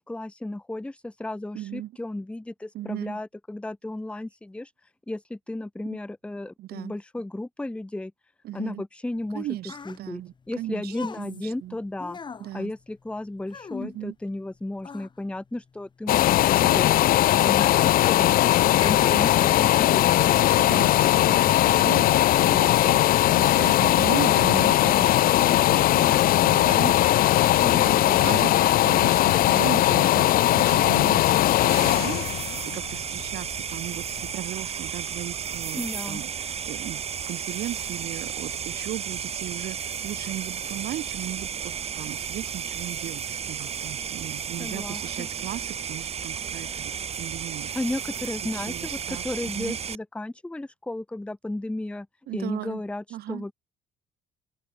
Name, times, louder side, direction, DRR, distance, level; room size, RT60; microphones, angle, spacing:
voice 1, 0.0-8.1 8.5-9.5 9.9-10.2 10.5-12.2 12.5-18.4 18.8-20.3 27.6-28.0 35.7-36.2 44.6-45.3 47.7-52.1 52.3-53.5, left 1 dB, 5° left, 0.8 m, -34 dB
voice 2, 1.5-1.9 2.7-3.2 5.9-6.0 6.6-7.0 8.4-8.8 9.3-11.8 12.4-12.7 13.8-14.1 16.6-16.8 18.7-19.3 20.5-46.9 47.2-47.7 48.5-49.8 52.3-52.8 53.1-53.4, right 14 dB, 70° right, 1.4 m, -37 dB
sound 1, 9.2-14.5 14.8-16.9 17.5-18.1 18.3-19.8 20.5-20.7, left 5 dB, 25° left, 1.3 m, -39 dB
sound 2, 16.1-33.8 34.2-34.3, left 14 dB, 60° left, 0.5 m, -19 dB
sound 3, 31.7-49.9, right 7 dB, 40° right, 1.1 m, -33 dB
open air
cardioid pair, 110°, 17 cm